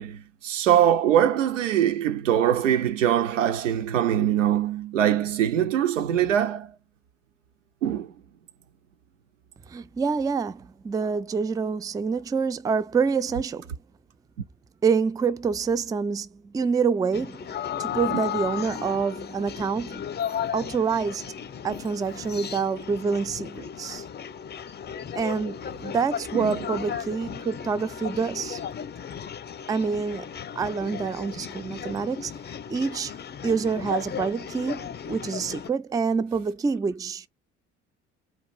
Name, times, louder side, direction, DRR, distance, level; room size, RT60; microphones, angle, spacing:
voice 1, 0.0-6.7 7.8-8.1 18.1-18.2 26.3-26.5, right 10 dB, 80° right, 0.7 m, -23 dB
voice 2, 9.7-13.7 14.8-17.5 17.8-20.1 20.5-21.3 21.6-24.0 25.1-28.6 29.7-30.3 30.6-32.3 32.7-33.1 33.4-37.3, right 5 dB, 10° right, 0.4 m, -27 dB
sound 1, 17.1-35.7, left 8 dB, 25° left, 0.7 m, -35 dB
4.2 x 2.5 x 4.6 m
figure-of-eight pair, 60°, 37 cm